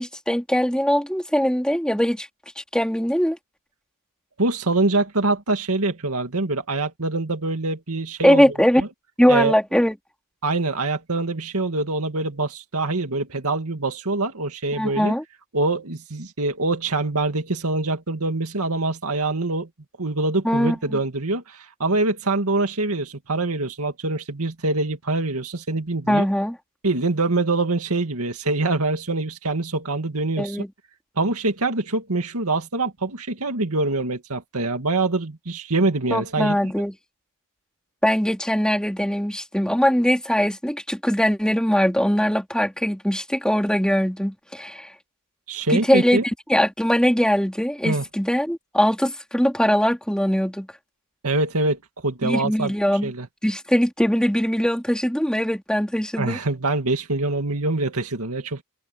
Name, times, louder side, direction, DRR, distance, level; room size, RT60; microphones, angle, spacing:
voice 1, 0.0-2.3 2.6-3.4 8.2-8.8 9.2-9.9 14.8-15.2 20.4-21.0 26.1-26.5 30.4-30.7 36.1-36.9 38.0-44.9 45.7-46.2 46.5-50.7 52.2-53.1 53.4-56.4, equal, 5° left, 4.0 m, -21 dB
voice 2, 4.4-8.9 9.3-9.5 10.4-15.1 15.5-19.7 20.0-26.3 26.8-30.6 31.2-36.6 45.5-46.2 47.9-48.0 51.2-52.7 53.0-53.3 56.2-58.6, right 2 dB, 80° right, 2.2 m, -24 dB
open air
head